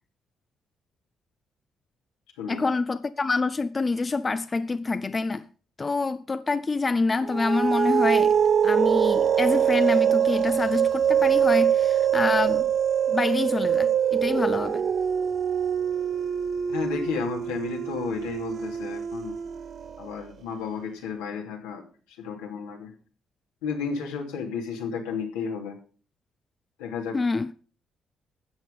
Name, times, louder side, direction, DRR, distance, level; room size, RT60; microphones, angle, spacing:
voice 1, 2.5-5.4 5.8-8.3 8.6-12.7 13.1-14.8 27.1-27.5, left 3 dB, 35° left, 0.7 m, -26 dB
sound 1, 7.3-20.1, right 8 dB, 60° right, 1.0 m, -23 dB
voice 2, 16.7-19.4 20.0-21.8 22.2-22.9 23.6-25.8 26.8-27.2, left 6 dB, 85° left, 2.8 m, -32 dB
13.5 x 8.3 x 5.3 m
hypercardioid pair, 50°, 0 cm